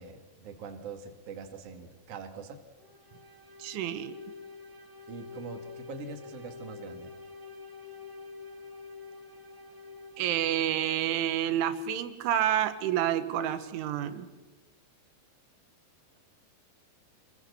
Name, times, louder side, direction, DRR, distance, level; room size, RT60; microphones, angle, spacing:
voice 1, 0.0-2.6 5.1-7.1, right 5 dB, 40° right, 4 dB, 2.5 m, -43 dB
sound 1, 2.8-11.2, left 4 dB, 25° right, 1.8 m, -47 dB
voice 2, 3.6-4.2 10.2-14.3, right 11 dB, 85° right, 10 dB, 3.8 m, -29 dB
26.0 x 20.5 x 7.0 m, 1.2 s
omnidirectional pair, 5.4 m